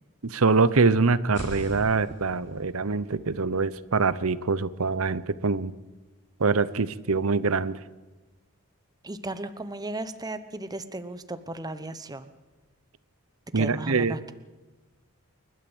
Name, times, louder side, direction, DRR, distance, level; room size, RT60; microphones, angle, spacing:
voice 1, 0.2-5.7 6.4-7.8 13.5-14.2, right 4 dB, 65° right, 16 dB, 0.9 m, -24 dB
sound 1, 1.2-5.0, equal, 55° left, 6.8 m, -44 dB
voice 2, 9.0-12.3 13.5-14.3, right 2 dB, 15° right, 11 dB, 1.0 m, -35 dB
29.0 x 12.5 x 8.0 m, 1.2 s
head